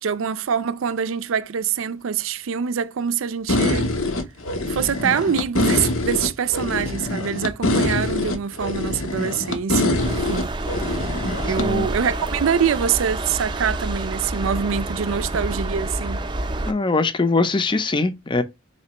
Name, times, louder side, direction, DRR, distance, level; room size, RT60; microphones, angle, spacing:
voice 1, 0.0-3.9 4.7-10.5 10.9-11.0 11.4-16.2, right 7 dB, 85° right, 0.4 m, -24 dB
sound 1, 3.5-11.7, left 2 dB, 80° left, 0.9 m, -24 dB
sound 2, 10.0-16.7, right 2 dB, 25° right, 0.5 m, -28 dB
voice 2, 11.4-11.9 16.7-18.4, left 3 dB, 25° left, 0.5 m, -22 dB
4.3 x 3.2 x 2.9 m
head